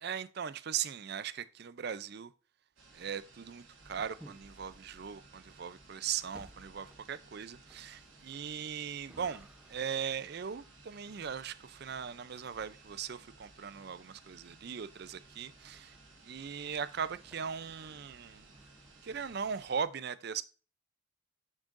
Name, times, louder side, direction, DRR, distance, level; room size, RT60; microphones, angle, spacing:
voice 1, 0.0-2.3 2.9-15.9 16.2-18.5 19.0-20.4, right 7 dB, 50° right, 0.4 m, -39 dB
sound 1, 2.8-19.8, right 3 dB, 70° right, 2.2 m, -59 dB
sound 2, 3.8-19.5, right 1 dB, 5° right, 0.7 m, -60 dB
10.0 x 6.2 x 2.5 m
head